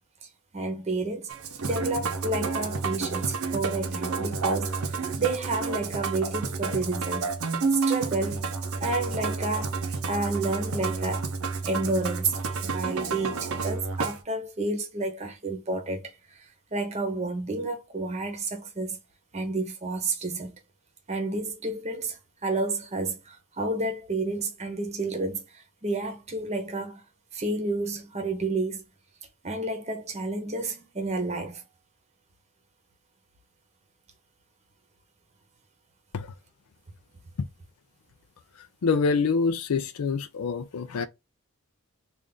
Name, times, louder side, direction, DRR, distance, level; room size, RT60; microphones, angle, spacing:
voice 1, 0.5-1.3 1.6-4.8 5.2-7.3 7.7-8.5 8.8-9.8 10.1-11.3 11.6-12.3 12.6-19.0 19.3-20.6 21.1-27.0 27.3-28.8 29.4-31.6, right 2 dB, 30° right, 0.8 m, -30 dB
Musical instrument, 1.3-14.2, right 4 dB, 70° right, 0.7 m, -30 dB
voice 2, 38.8-41.1, left 5 dB, 85° left, 0.4 m, -26 dB
3.4 x 2.5 x 3.7 m
head